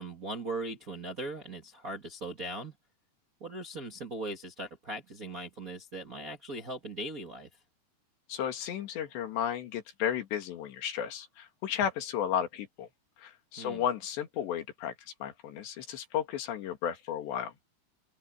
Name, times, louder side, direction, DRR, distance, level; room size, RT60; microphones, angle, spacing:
voice 1, 0.0-2.7 3.4-7.5 13.6-13.8, right 2 dB, 45° right, 1.1 m, -39 dB
voice 2, 8.3-12.9 13.2-14.9 15.2-17.5, left 9 dB, 90° left, 4.4 m, -33 dB
open air
omnidirectional pair, 4.8 m